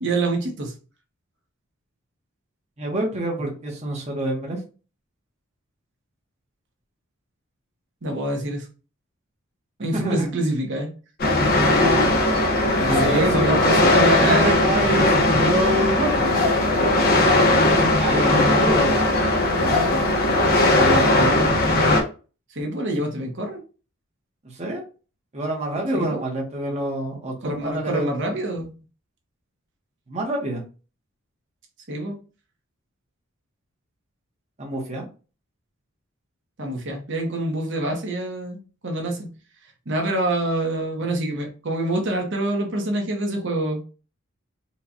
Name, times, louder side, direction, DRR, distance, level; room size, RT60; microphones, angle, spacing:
voice 1, 0.0-0.7 8.0-8.6 9.8-10.9 12.9-14.6 18.1-18.5 20.9-21.3 22.5-23.6 25.9-26.3 27.4-28.7 31.9-32.1 36.6-39.3 39.9-43.8, right 1 dB, 60° right, 2 dB, 1.0 m, -26 dB
voice 2, 2.8-4.6 9.9-10.2 11.5-12.2 12.8-16.3 17.7-19.0 19.6-19.8 20.7-21.6 24.4-24.8 25.3-28.0 30.1-30.6 34.6-35.0, right 1 dB, 35° right, -1 dB, 0.9 m, -27 dB
sound 1, 11.2-22.0, left 2 dB, 45° left, 0.8 m, -19 dB
4.4 x 2.3 x 2.6 m, 0.35 s
head